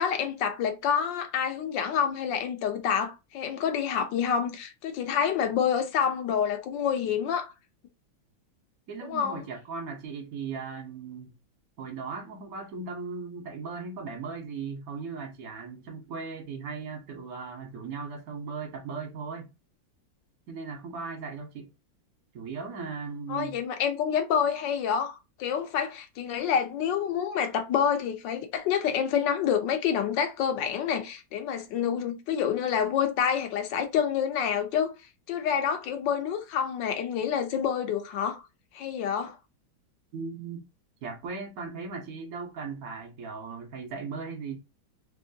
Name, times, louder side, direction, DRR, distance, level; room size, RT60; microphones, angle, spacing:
voice 1, 0.0-7.5 9.0-9.4 23.3-34.9 35.3-38.4 38.7-39.4, left 8 dB, 70° left, 1.4 m, -28 dB
voice 2, 8.9-11.3 11.8-19.5 20.5-21.7 22.3-23.6 40.1-40.7 41.0-44.6, right 5 dB, 50° right, 1.4 m, -37 dB
3.5 x 3.0 x 2.8 m
omnidirectional pair, 2.1 m